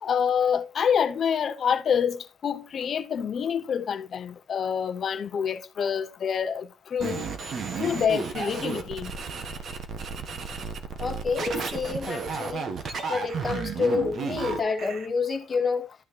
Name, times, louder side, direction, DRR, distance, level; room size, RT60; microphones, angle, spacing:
voice 1, 0.0-7.2 7.8-9.1, left 7 dB, 40° left, 0.8 m, -27 dB
sound 1, 7.0-15.1, right 5 dB, 40° right, 1.6 m, -33 dB
voice 2, 11.0-12.7 13.1-15.9, left 4 dB, 25° left, 1.7 m, -28 dB
12.5 x 6.3 x 3.0 m
cardioid pair, 170°, 0 cm